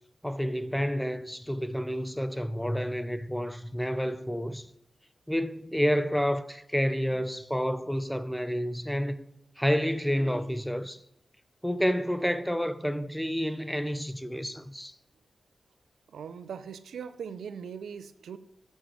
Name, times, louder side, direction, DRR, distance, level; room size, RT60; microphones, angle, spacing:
voice 1, 0.2-4.7 5.3-9.2 9.6-11.0 11.6-14.9, equal, 5° left, 0.7 m, -29 dB
voice 2, 16.1-18.4, right 7 dB, 90° right, 0.5 m, -40 dB
7.1 x 6.1 x 7.6 m
cardioid pair, 45°, 0 cm